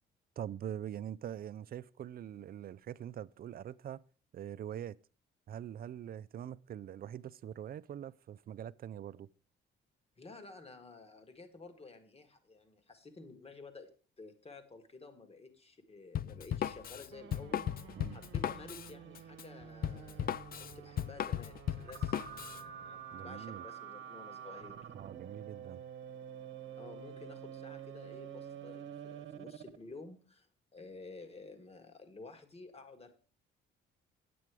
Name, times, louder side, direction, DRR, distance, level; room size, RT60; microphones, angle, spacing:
voice 1, 0.4-4.1 4.3-5.0 5.5-9.3 18.0-18.2 23.1-23.6 24.9-25.8, right 10 dB, 50° right, 0.4 m, -43 dB
voice 2, 10.2-17.6 18.1-24.8 26.8-33.1, left 3 dB, 30° left, 1.6 m, -52 dB
Drum kit, 16.2-22.6, left 10 dB, 50° left, 0.4 m, -37 dB
sound 1, 17.1-29.8, right 9 dB, 75° right, 0.9 m, -48 dB
9.1 x 8.6 x 4.8 m
cardioid pair, 90°, 20 cm